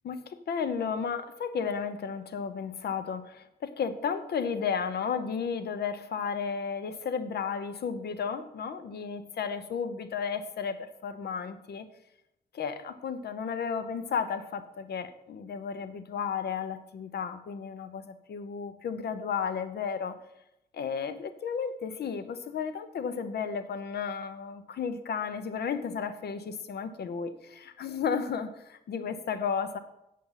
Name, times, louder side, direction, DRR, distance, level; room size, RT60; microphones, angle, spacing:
voice 1, 0.0-11.9 12.5-20.2 20.7-29.8, left 6 dB, 85° left, 10 dB, 0.9 m, -33 dB
8.5 x 7.5 x 5.7 m, 0.84 s
wide cardioid pair, 105°, 16 cm